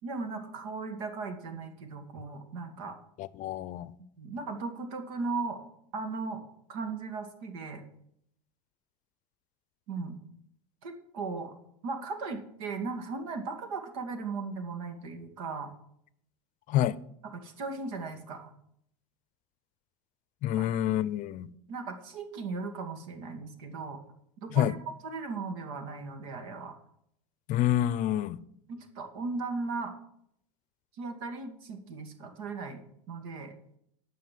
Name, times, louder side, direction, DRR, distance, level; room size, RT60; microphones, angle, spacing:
voice 1, 0.0-3.0 4.2-5.6 5.9-6.4 6.7-7.8 9.9-10.2 10.8-11.5 11.8-15.7 17.2-18.5 20.6-20.7 21.7-24.0 24.4-24.8 25.0-26.8 28.7-29.9 31.0-33.5, right 4 dB, 80° right, 2.2 m, -37 dB
voice 2, 3.2-3.9 16.7-17.0 20.4-21.5 24.5-24.8 27.5-28.4, left 12 dB, 45° left, 0.6 m, -27 dB
13.0 x 5.7 x 7.5 m
supercardioid pair, 125°, 18 cm